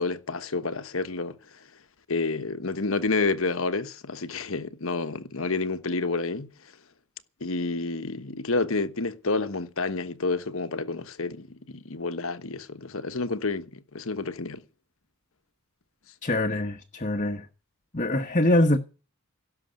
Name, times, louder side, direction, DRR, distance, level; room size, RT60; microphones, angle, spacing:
voice 1, 0.0-1.4 2.1-6.5 7.4-14.6, left 3 dB, 65° left, 1.2 m, -29 dB
voice 2, 16.2-17.5 17.9-18.8, left 1 dB, 35° left, 1.2 m, -24 dB
17.0 x 7.0 x 9.0 m
head